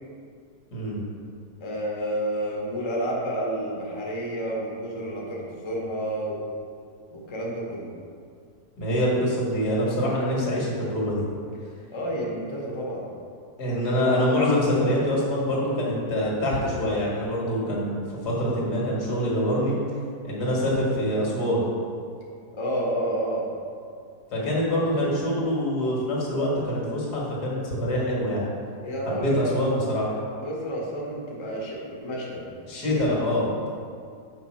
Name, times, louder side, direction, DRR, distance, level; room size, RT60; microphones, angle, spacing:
voice 1, 0.7-1.0 8.8-11.2 13.6-19.8 20.2-21.6 24.3-28.5 29.1-30.1 32.7-33.5, equal, 75° left, -4 dB, 2.1 m, -25 dB
voice 2, 1.6-6.4 7.1-7.9 11.9-13.0 22.5-23.5 28.8-29.5 30.4-32.4 32.7-33.0, right 1 dB, 20° left, -3 dB, 0.8 m, -30 dB
5.9 x 5.5 x 4.3 m, 2.3 s
omnidirectional pair, 1.7 m